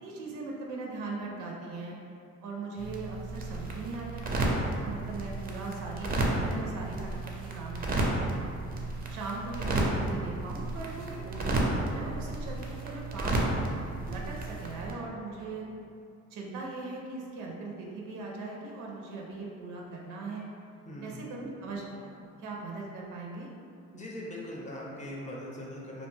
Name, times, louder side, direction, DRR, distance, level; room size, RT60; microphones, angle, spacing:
voice 1, 0.0-2.0 2.4-4.5 4.8-8.3 9.1-13.5 14.1-15.7 16.3-20.5 21.0-23.5, right 3 dB, 90° right, -2 dB, 0.5 m, -39 dB
sound 1, 2.8-14.9, right 2 dB, 30° right, 0.4 m, -32 dB
voice 2, 10.9-11.3 20.8-21.3 23.9-26.1, left 1 dB, 25° left, -4 dB, 0.6 m, -41 dB
2.5 x 2.1 x 3.1 m, 2.5 s
cardioid pair, 90°, 30 cm